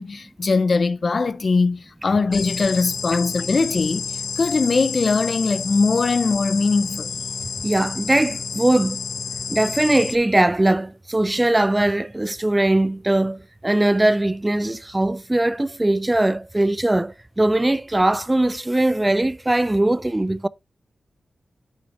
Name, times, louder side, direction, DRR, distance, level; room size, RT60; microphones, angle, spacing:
voice 1, 0.0-4.1 4.4-7.1, left 4 dB, 40° left, 0.6 m, -21 dB
sound 1, 2.3-10.2, left 6 dB, 75° left, 0.8 m, -30 dB
voice 2, 7.6-9.0 9.5-20.5, right 1 dB, 15° right, 0.4 m, -20 dB
10.5 x 7.3 x 2.7 m
wide cardioid pair, 165°, 0 cm